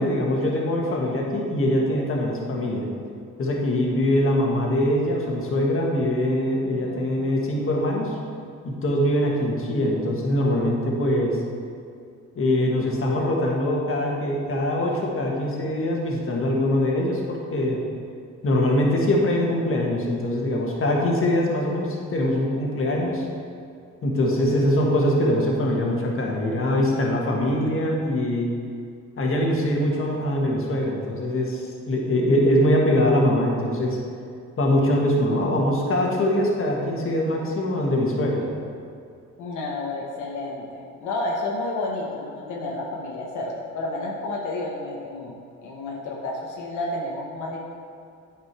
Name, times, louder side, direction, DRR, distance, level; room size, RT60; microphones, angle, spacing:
voice 1, 0.0-2.9 3.4-8.2 8.6-11.4 12.4-17.8 18.4-23.3 24.0-28.5 29.2-34.0 34.6-38.5, left 1 dB, 45° left, -1 dB, 1.7 m, -23 dB
voice 2, 6.8-7.3 39.4-45.3 45.6-47.6, left 2 dB, 80° left, -3 dB, 1.1 m, -31 dB
9.1 x 5.1 x 4.7 m, 2.3 s
cardioid pair, 90°, 30 cm